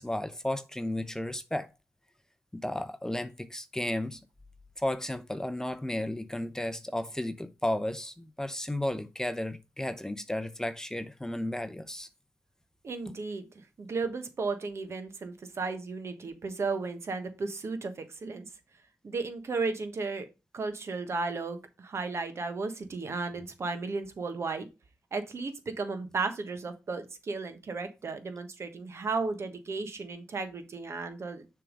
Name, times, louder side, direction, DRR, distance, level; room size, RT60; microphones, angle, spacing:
voice 1, 0.0-1.7 2.5-4.2 4.8-12.1 13.1-13.2, left 1 dB, 10° left, 0.6 m, -33 dB
voice 2, 12.8-13.4 13.8-18.5 19.0-20.3 20.5-24.7 25.1-31.4, right 4 dB, 55° right, 1.3 m, -34 dB
6.7 x 3.5 x 5.2 m
cardioid pair, 60°, 6 cm